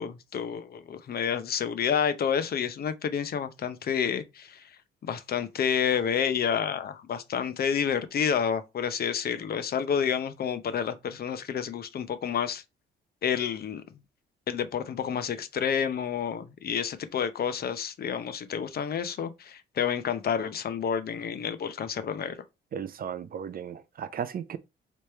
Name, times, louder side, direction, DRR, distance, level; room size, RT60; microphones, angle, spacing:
voice 1, 0.0-4.6 5.0-12.6 13.2-13.8 14.5-22.4, left 7 dB, 50° left, 0.7 m, -29 dB
voice 2, 22.7-24.6, right 8 dB, 45° right, 0.5 m, -35 dB
3.4 x 3.1 x 4.2 m
cardioid pair, 90°, 20 cm